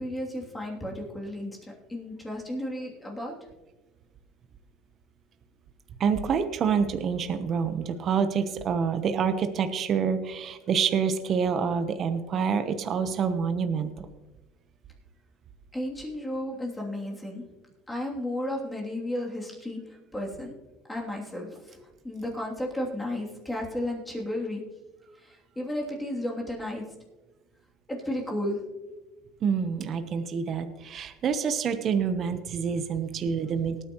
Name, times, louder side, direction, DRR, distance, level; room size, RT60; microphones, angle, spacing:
voice 1, 0.0-1.6 1.9-3.3 15.7-17.4 17.9-19.8 20.1-20.5 20.9-21.5 22.0-24.6 25.6-26.8 27.9-28.6, left 1 dB, 10° left, -2 dB, 3.0 m, -33 dB
voice 2, 6.0-14.1 29.4-33.8, right 6 dB, 40° right, 8 dB, 1.0 m, -27 dB
19.5 x 9.1 x 3.1 m, 1.1 s
supercardioid pair, 115°, 0 cm